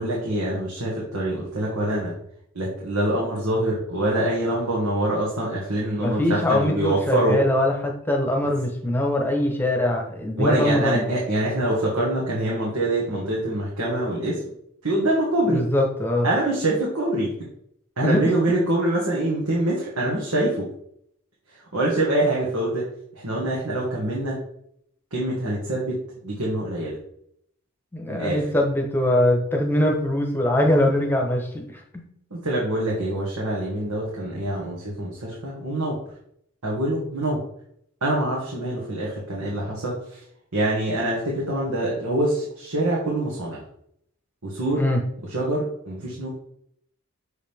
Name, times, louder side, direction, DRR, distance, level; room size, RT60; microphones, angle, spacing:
voice 1, 0.0-2.1 2.6-7.4 10.4-14.4 14.8-15.6 16.2-17.3 18.0-20.7 21.7-22.8 23.2-24.4 25.1-27.0 28.1-28.4 32.3-36.0 36.6-37.4 38.0-40.2 40.5-43.6 44.4-44.9 45.3-46.3, right 1 dB, 85° right, -4 dB, 1.8 m, -25 dB
voice 2, 6.0-11.1 15.5-16.3 18.0-18.3 27.9-31.6 44.7-45.0, left 1 dB, 10° left, 2 dB, 1.0 m, -22 dB
6.5 x 4.9 x 3.6 m, 0.70 s
head